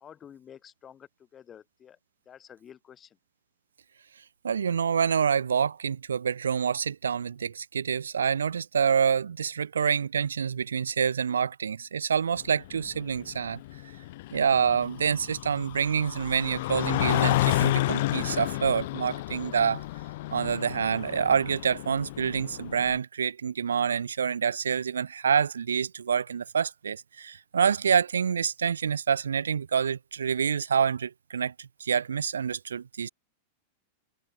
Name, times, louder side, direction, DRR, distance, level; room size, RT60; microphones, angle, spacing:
voice 1, 0.0-2.0 2.3-3.2, left 9 dB, 25° left, 1.1 m, -50 dB
voice 2, 4.4-13.6 14.3-19.8 20.3-33.1, right 7 dB, 80° right, 0.4 m, -27 dB
sound 1, 12.4-23.0, left 18 dB, 60° left, 0.7 m, -31 dB
hypercardioid pair, 95°, 0 cm